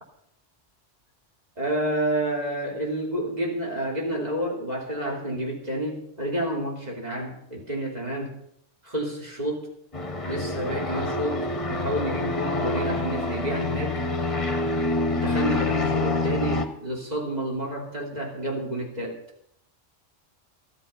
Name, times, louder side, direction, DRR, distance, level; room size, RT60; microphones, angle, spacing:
voice 1, 1.6-8.4 8.8-9.7 10.2-14.0 15.1-19.2, right 1 dB, 35° right, -1 dB, 3.2 m, -29 dB
sound 1, 9.9-16.7, left 2 dB, 30° left, 1.1 m, -27 dB
13.5 x 12.0 x 5.6 m, 0.71 s
omnidirectional pair, 1.2 m